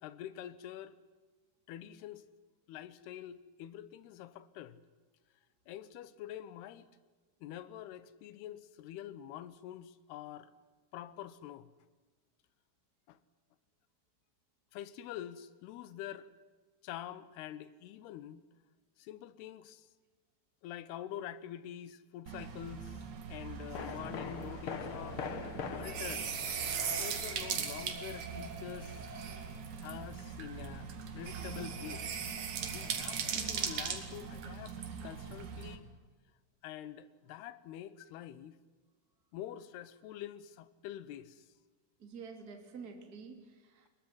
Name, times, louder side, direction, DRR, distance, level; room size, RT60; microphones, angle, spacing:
voice 1, 0.0-1.0 1.7-2.2 2.7-4.8 5.7-6.9 7.4-10.5 10.9-11.7 13.1-13.2 14.7-16.3 16.8-18.4 19.0-19.9 20.6-23.0 23.3-25.2 25.7-26.3 27.0-29.1 29.8-32.1 32.7-35.9 36.6-38.6 39.3-41.5, left 11 dB, 85° left, 3.1 m, -46 dB
sound 1, 22.3-35.8, right 6 dB, 55° right, 3.3 m, -39 dB
sound 2, 22.8-23.0 23.7-27.8 28.1-28.2, left 6 dB, 65° left, 1.3 m, -43 dB
voice 2, 33.3-33.8 35.0-35.1 42.0-43.9, right 5 dB, 25° right, 3.0 m, -49 dB
22.0 x 22.0 x 9.5 m
omnidirectional pair, 4.6 m